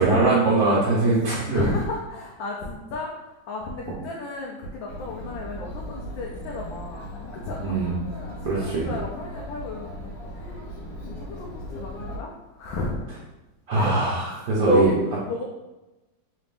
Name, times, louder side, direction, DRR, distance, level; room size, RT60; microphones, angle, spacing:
voice 1, 0.0-1.7 7.6-7.9 8.4-8.9 13.7-14.9, right 3 dB, 65° right, -7 dB, 1.3 m, -21 dB
voice 2, 1.5-7.8 8.2-10.6 11.0-13.0 13.7-13.9 14.3-15.4, left 2 dB, 85° left, -2 dB, 1.3 m, -32 dB
Chatter, 4.9-12.2, equal, 55° left, 1.4 m, -37 dB
3.9 x 3.4 x 2.5 m, 1.0 s
omnidirectional pair, 2.0 m